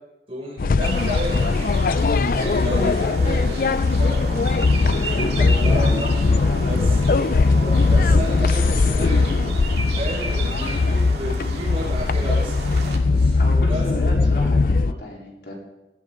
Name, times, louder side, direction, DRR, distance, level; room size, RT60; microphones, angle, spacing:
voice 1, 0.3-1.9 2.3-6.2 6.6-9.6 10.0-12.6 13.1-13.9, equal, 35° right, -3 dB, 6.5 m, -32 dB
sound 1, 0.6-14.9, left 3 dB, 50° left, 0.4 m, -20 dB
sound 2, 0.8-13.0, right 3 dB, 70° right, 2.2 m, -34 dB
sound 3, 1.8-14.9, equal, 15° left, 4.0 m, -43 dB
voice 2, 4.9-5.5 6.4-6.7 13.4-15.5, equal, 70° left, -2 dB, 4.2 m, -33 dB
17.5 x 14.5 x 3.9 m, 1.0 s
head